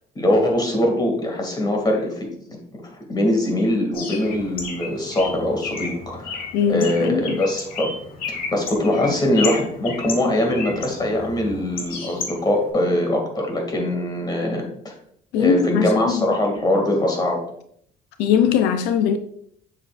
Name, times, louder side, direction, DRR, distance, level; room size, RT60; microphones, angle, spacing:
voice 1, 0.2-7.9 8.3-14.9 15.4-17.4, left 1 dB, 25° left, 2.3 m, -22 dB
Bird, 3.9-12.7, left 4 dB, 60° left, 1.7 m, -33 dB
voice 2, 6.5-7.4 15.3-16.2 18.2-19.2, left 8 dB, 90° left, 0.5 m, -20 dB
7.3 x 7.2 x 2.5 m
cardioid pair, 110°, 17 cm